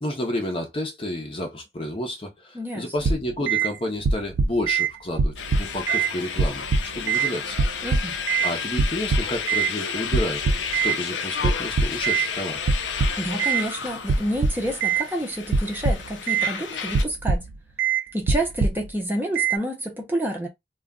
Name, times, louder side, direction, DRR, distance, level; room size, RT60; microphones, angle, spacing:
voice 1, 0.0-7.6 8.4-10.4 10.8-12.6, left 1 dB, 30° left, 0.7 m, -30 dB
voice 2, 2.5-2.9 7.8-8.1 13.2-17.4 18.1-20.5, equal, 10° right, 0.7 m, -29 dB
sound 1, 3.0-3.7 4.0-4.9 5.2-6.1 6.4-7.3 7.6-8.5 8.8-9.7 10.1-11.0 11.4-12.3 12.7-13.6 14.1-15.0 15.5-16.5 16.9-17.5 17.8-18.0 18.3-18.9 19.4-19.6, right 5 dB, 85° right, 0.4 m, -22 dB
sound 2, 5.4-17.0, left 6 dB, 85° left, 0.6 m, -32 dB
2.4 x 2.2 x 3.6 m
head